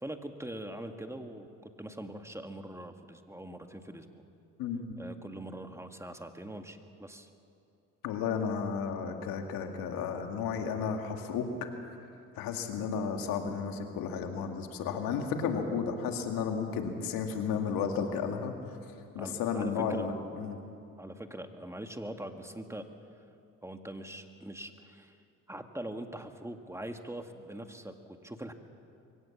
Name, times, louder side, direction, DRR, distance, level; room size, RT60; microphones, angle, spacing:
voice 1, 0.0-4.1 5.0-7.3 19.2-20.1 21.0-22.9 23.6-25.1 25.5-28.5, right 1 dB, 10° right, 6 dB, 1.9 m, -42 dB
voice 2, 4.6-4.9 8.0-11.7 12.4-18.5 19.1-20.6, left 6 dB, 80° left, 4 dB, 2.1 m, -33 dB
23.0 x 17.5 x 7.3 m, 2.6 s
supercardioid pair, 65°, 34 cm